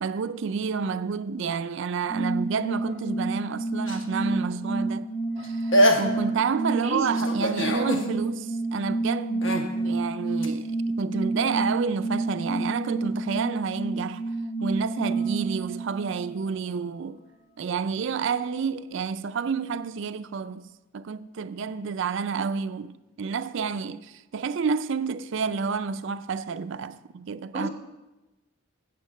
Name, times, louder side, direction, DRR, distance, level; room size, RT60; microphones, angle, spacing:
voice 1, 0.0-5.1 5.4-14.2 14.6-17.2 17.6-20.7 20.9-27.7, right 5 dB, 60° right, 0.4 m, -30 dB
sound 1, 2.1-16.5, right 2 dB, 30° left, 1.9 m, -29 dB
sound 2, 3.9-4.5 5.4-5.5 5.7-6.4 7.2-8.1 9.4-9.7 10.4-10.5, equal, 65° left, 1.2 m, -23 dB
voice 2, 6.7-7.2 27.5-27.7, right 2 dB, 30° right, 1.1 m, -30 dB
8.5 x 7.7 x 6.3 m
head